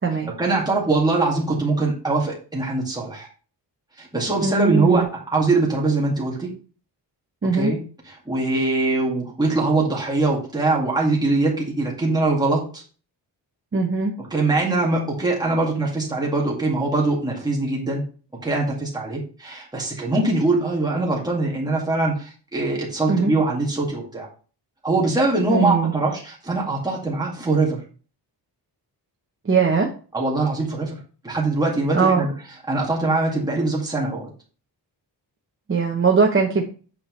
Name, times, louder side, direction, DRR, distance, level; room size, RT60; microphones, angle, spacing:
voice 1, 0.3-3.3 4.0-6.5 7.4-12.8 14.2-18.0 18.4-24.3 24.8-27.8 30.1-31.0 31.2-32.3 32.7-34.3, right 3 dB, 10° right, -3 dB, 2.1 m, -22 dB
voice 2, 4.4-5.0 7.4-7.7 13.7-14.1 23.1-23.3 25.5-25.9 29.5-29.9 31.9-32.2 35.7-36.6, right 4 dB, 30° right, 0 dB, 0.9 m, -20 dB
8.5 x 5.7 x 3.2 m, 0.38 s
wide cardioid pair, 175°, 43 cm